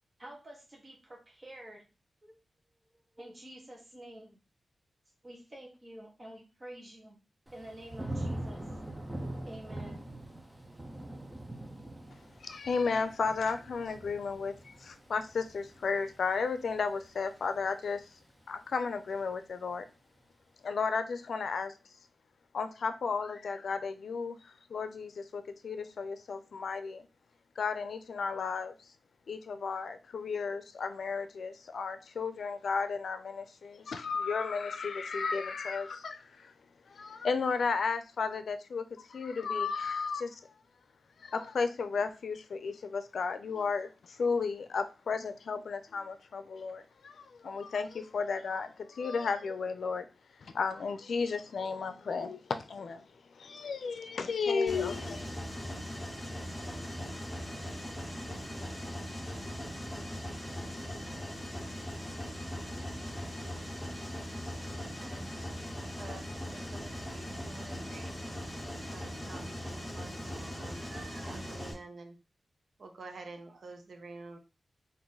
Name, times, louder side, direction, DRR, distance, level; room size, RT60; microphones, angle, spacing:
voice 1, 0.2-1.9 2.2-2.4 3.2-4.4 5.2-7.2 7.5-8.6 9.4-10.0, right 1 dB, 30° right, -1 dB, 0.9 m, -49 dB
Thunder / Rain, 7.5-18.4 18.8-19.3, right 1 dB, 15° right, 0.6 m, -43 dB
voice 2, 12.1-18.0 18.5-19.8 20.6-21.7 22.5-27.1 27.6-28.7 29.3-36.5 36.9-40.4 41.2-50.1 50.4-55.3, left 5 dB, 80° left, 9 dB, 0.5 m, -34 dB
Mechanisms, 54.7-71.7, equal, 10° left, 1.0 m, -40 dB
voice 3, 64.8-65.3 65.9-68.1 68.9-72.1 72.8-74.4, right 3 dB, 65° right, 5 dB, 0.6 m, -49 dB
3.7 x 2.6 x 3.9 m, 0.31 s
wide cardioid pair, 130°, 0 cm